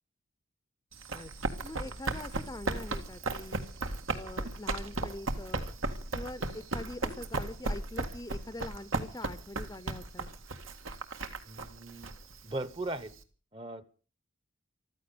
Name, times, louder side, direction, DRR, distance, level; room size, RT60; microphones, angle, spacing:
Run, 0.9-13.2, right 2 dB, 80° right, 2.0 m, -36 dB
voice 1, 1.6-3.6 4.1-10.3, left 1 dB, 15° left, 14 dB, 0.7 m, -44 dB
voice 2, 11.4-12.1 12.4-13.1 13.5-13.8, right 2 dB, 25° right, 16 dB, 1.0 m, -38 dB
15.0 x 13.5 x 6.8 m, 0.39 s
head